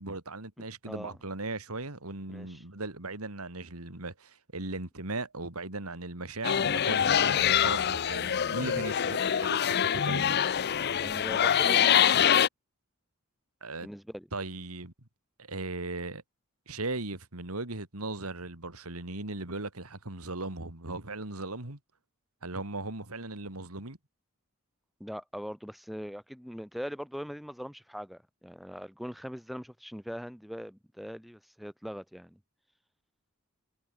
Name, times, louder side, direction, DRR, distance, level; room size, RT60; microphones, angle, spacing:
voice 1, 0.0-10.5 13.6-13.9 14.3-14.9 15.4-16.2 16.7-21.8 22.4-24.0, right 2 dB, 90° right, 3.3 m, -38 dB
voice 2, 0.6-1.2 2.3-2.6 11.0-12.1 13.8-14.3 25.0-32.4, equal, ahead, 7.9 m, -41 dB
sound 1, 6.4-12.5, left 9 dB, 50° left, 0.5 m, -25 dB
head